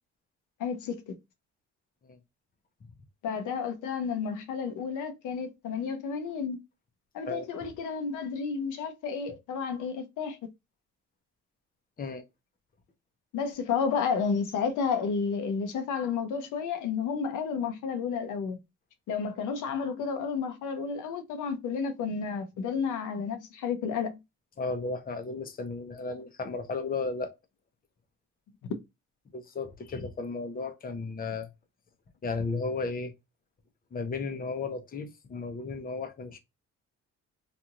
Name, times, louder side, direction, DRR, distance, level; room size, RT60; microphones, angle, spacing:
voice 1, 0.6-1.1 3.2-6.6 7.1-10.4 13.3-18.6 19.1-24.2, left 6 dB, 85° left, 0.7 m, -31 dB
voice 2, 24.6-27.3 29.3-31.5 32.2-33.1 33.9-36.4, left 4 dB, 30° left, 0.7 m, -34 dB
3.0 x 2.5 x 2.4 m
cardioid pair, 90°, 30 cm